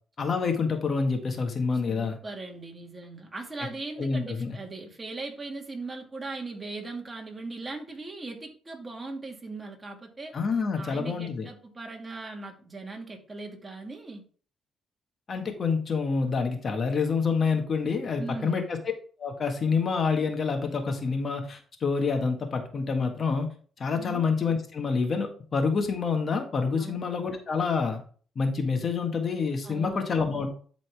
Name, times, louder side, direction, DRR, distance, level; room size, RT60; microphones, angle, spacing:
voice 1, 0.2-2.2 4.0-4.6 10.3-11.5 15.3-18.8 19.2-28.0 28.4-30.5, left 5 dB, 45° left, 4 dB, 1.7 m, -27 dB
voice 2, 1.9-10.3 10.8-14.2 18.2-18.6 23.9-24.2 26.8-27.0 29.6-30.1, right 3 dB, 25° right, 1 dB, 2.2 m, -39 dB
11.5 x 4.2 x 3.5 m, 0.43 s
cardioid pair, 90°, 0 cm